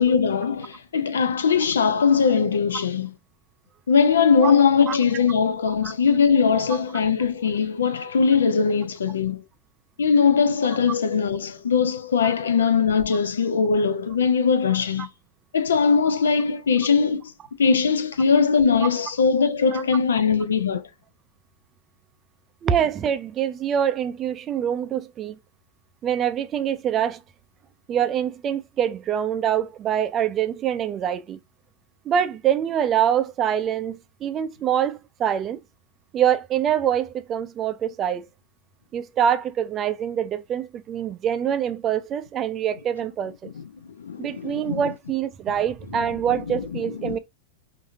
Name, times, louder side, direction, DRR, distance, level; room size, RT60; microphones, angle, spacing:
voice 1, 0.0-3.1 3.9-9.4 10.0-15.1 15.5-17.3 17.6-20.9 43.6-43.7 44.0-44.8 45.9-46.1 46.3-47.2, left 6 dB, 70° left, 0.4 m, -21 dB
voice 2, 22.6-25.4 26.0-27.2 27.9-31.4 32.1-35.6 36.1-38.3 38.9-43.5 44.2-47.2, right 9 dB, 30° right, 0.4 m, -25 dB
4.8 x 2.6 x 2.6 m
figure-of-eight pair, 90°, 0 cm